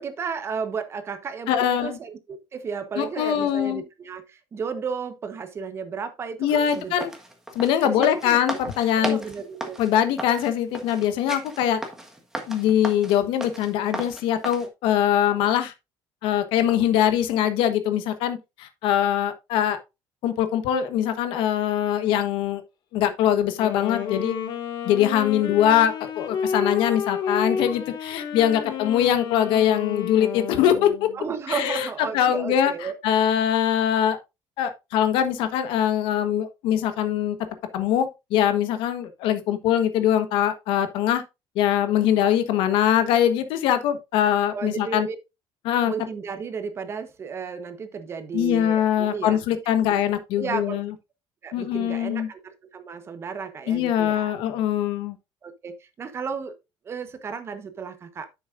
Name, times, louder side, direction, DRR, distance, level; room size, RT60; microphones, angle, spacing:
voice 1, 0.0-7.1 7.8-8.6 8.9-9.8 31.1-32.9 44.5-45.2 45.9-49.8 50.4-50.8 51.4-54.3 55.4-56.5 56.8-58.3, right 6 dB, 30° right, 1.1 m, -33 dB
voice 2, 1.5-2.0 3.0-3.8 6.4-7.1 7.5-9.2 9.8-11.8 12.5-15.7 16.2-19.8 20.2-22.6 22.9-24.4 24.8-31.1 31.5-31.9 32.1-34.2 34.6-37.4 37.7-41.2 41.5-45.1 45.6-45.9 48.3-50.9 51.5-52.3 53.7-55.2, left 10 dB, 75° left, 1.3 m, -22 dB
sound 1, 6.6-14.7, right 1 dB, 5° right, 1.5 m, -35 dB
Wind instrument woodwind instrument, 23.6-31.2, left 7 dB, 60° left, 1.9 m, -30 dB
9.7 x 7.2 x 2.5 m
cardioid pair, 145°, 9 cm